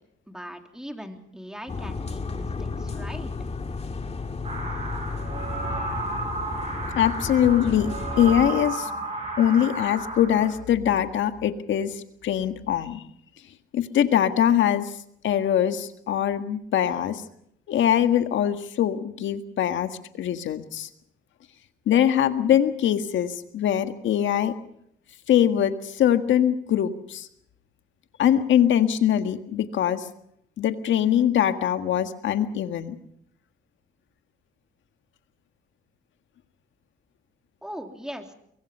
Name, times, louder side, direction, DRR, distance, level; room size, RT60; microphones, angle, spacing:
voice 1, 0.3-3.3 37.6-38.3, equal, 5° right, 4 dB, 3.3 m, -40 dB
sound 1, 1.7-8.5, left 4 dB, 30° left, 2.2 m, -33 dB
sound 2, 4.4-10.5, right 3 dB, 35° right, 6.4 m, -33 dB
voice 2, 6.9-8.9 9.4-13.0 13.7-14.9 15.2-17.2 17.7-20.9 21.9-24.5 25.3-27.3 28.2-30.0 30.6-33.0, left 10 dB, 75° left, 9 dB, 1.7 m, -22 dB
23.0 x 23.0 x 5.5 m, 0.73 s
cardioid pair, 90°, 20 cm